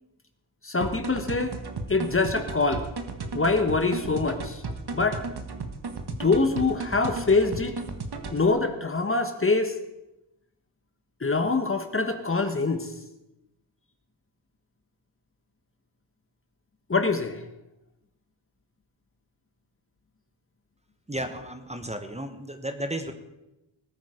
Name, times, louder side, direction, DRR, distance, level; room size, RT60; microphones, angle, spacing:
voice 1, 0.6-1.6 1.9-2.8 3.3-4.6 4.9-5.2 6.1-7.8 8.3-9.7 11.2-12.9 16.9-17.4, left 3 dB, 25° left, 7 dB, 1.3 m, -24 dB
sound 1, 0.8-8.5, right 3 dB, 50° right, 1.6 m, -35 dB
voice 2, 21.1-23.1, right 1 dB, 15° right, 7 dB, 1.2 m, -33 dB
19.5 x 8.9 x 5.1 m, 0.94 s
wide cardioid pair, 95°, 48 cm